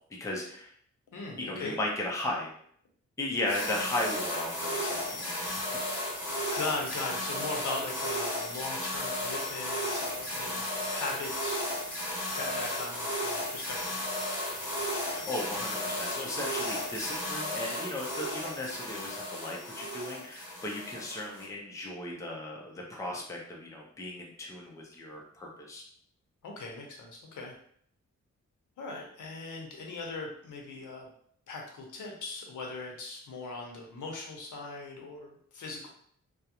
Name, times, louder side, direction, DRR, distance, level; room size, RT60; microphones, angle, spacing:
voice 1, 0.2-0.7 1.4-2.5 3.2-5.6 15.1-25.8, left 1 dB, 10° left, -1 dB, 0.4 m, -36 dB
voice 2, 1.1-1.8 6.2-10.6 10.9-11.7 12.4-14.0 26.4-27.5 28.8-31.1 31.5-35.9, left 3 dB, 90° left, 0 dB, 0.7 m, -39 dB
sound 1, 3.5-21.4, left 1 dB, 5° right, 0.8 m, -34 dB
2.3 x 2.0 x 2.8 m, 0.63 s
wide cardioid pair, 165°, 30 cm